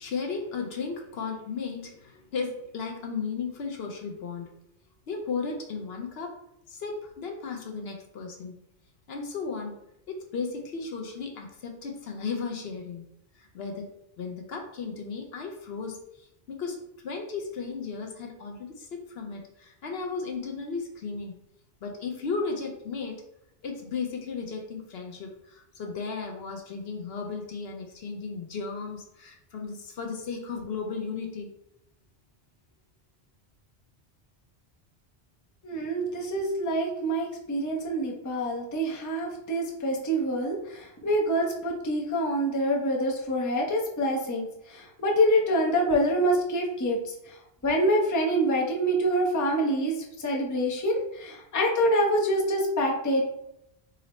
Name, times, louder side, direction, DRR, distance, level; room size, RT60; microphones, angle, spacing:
voice 1, 0.0-4.5 5.1-6.3 6.7-8.6 9.1-9.7 10.1-13.0 13.4-13.8 14.2-16.8 17.0-21.4 21.8-23.2 23.6-31.5, left 5 dB, 70° left, 2 dB, 0.9 m, -35 dB
voice 2, 35.6-47.0 47.3-47.4 47.6-53.2, equal, 20° left, -1 dB, 0.5 m, -26 dB
3.9 x 2.0 x 4.1 m, 0.80 s
omnidirectional pair, 1.1 m